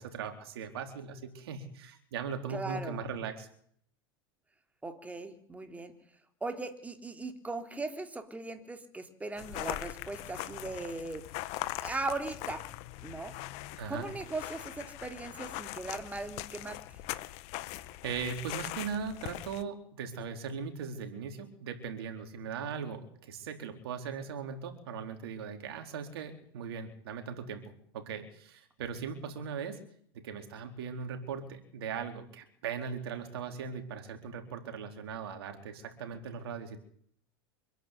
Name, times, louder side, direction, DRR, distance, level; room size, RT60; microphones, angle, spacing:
voice 1, 0.0-3.5 13.8-14.1 18.0-29.8 30.1-36.8, right 6 dB, 80° right, 5 dB, 4.2 m, -39 dB
voice 2, 2.5-3.0 4.8-5.9 6.4-11.2 11.8-12.6 13.0-13.3 13.9-16.8, right 3 dB, 10° right, 6 dB, 3.3 m, -38 dB
sound 1, 9.4-19.6, left 16 dB, 55° left, 1.6 m, -41 dB
26.0 x 11.5 x 9.5 m, 0.62 s
hypercardioid pair, 105°, 13 cm